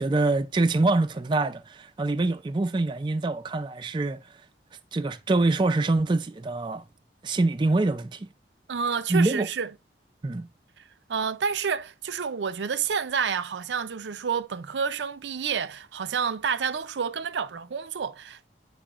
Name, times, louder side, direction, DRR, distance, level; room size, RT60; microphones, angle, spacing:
voice 1, 0.0-4.2 4.9-6.8 7.2-8.3 9.1-9.5 10.2-10.5, right 2 dB, 25° right, 0.4 m, -25 dB
voice 2, 8.7-9.7 11.1-18.5, right 6 dB, 90° right, 0.5 m, -29 dB
8.7 x 5.5 x 2.4 m
head